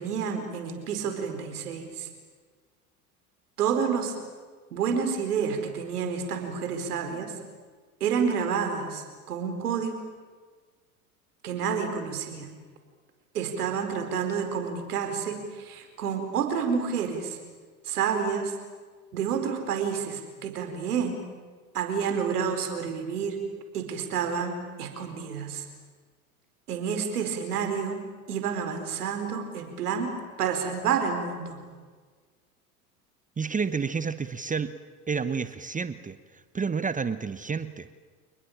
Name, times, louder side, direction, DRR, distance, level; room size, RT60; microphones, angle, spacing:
voice 1, 0.0-2.1 3.6-4.1 4.7-7.3 8.0-9.9 11.4-12.5 13.3-17.4 17.8-18.6 19.1-21.2 21.7-23.4 23.7-25.6 26.7-31.6, right 6 dB, 80° right, 6 dB, 4.7 m, -29 dB
voice 2, 33.4-34.7 35.1-37.9, right 5 dB, 15° right, 13 dB, 1.0 m, -30 dB
29.0 x 20.5 x 8.8 m, 1.5 s
hypercardioid pair, 80°, 45 cm